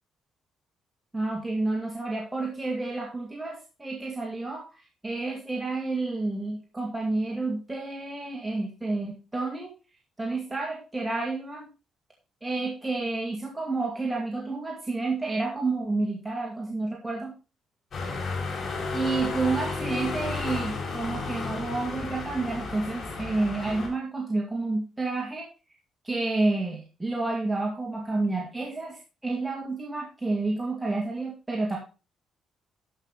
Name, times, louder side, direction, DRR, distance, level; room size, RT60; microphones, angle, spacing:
voice 1, 1.1-4.6 5.0-9.7 10.2-11.7 12.4-17.3 18.9-25.5 26.0-31.8, right 3 dB, 15° right, -1 dB, 2.2 m, -30 dB
sound 1, 17.9-23.9, left 3 dB, 50° left, 4.9 m, -32 dB
12.0 x 5.9 x 4.0 m, 0.33 s
cardioid pair, 90°, 0 cm